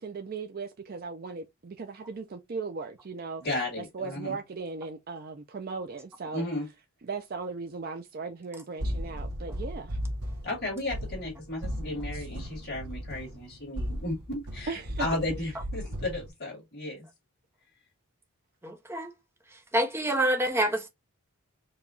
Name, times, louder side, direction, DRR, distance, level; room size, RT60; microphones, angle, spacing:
voice 1, 0.0-3.4 3.8-6.5 7.0-10.0 12.1-12.3 14.7-15.1, right 4 dB, 45° right, 0.4 m, -37 dB
voice 2, 3.4-4.4 6.3-6.6 10.4-14.7 15.0-17.1, left 2 dB, 45° left, 2.3 m, -34 dB
sound 1, 8.8-16.3, equal, 85° right, 1.2 m, -36 dB
voice 3, 18.6-19.1 19.7-20.9, right 1 dB, 10° right, 0.7 m, -27 dB
4.7 x 2.3 x 3.8 m
head